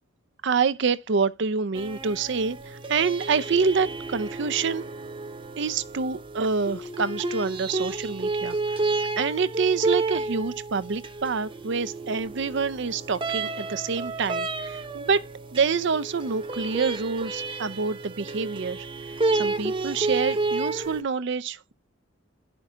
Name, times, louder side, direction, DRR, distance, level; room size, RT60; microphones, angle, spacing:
voice 1, 0.4-4.8 5.6-8.8 9.2-15.3 15.5-21.7, right 5 dB, 65° right, 0.6 m, -27 dB
sound 1, 1.7-21.0, right 3 dB, 25° right, 0.9 m, -31 dB
11.0 x 5.9 x 3.6 m
head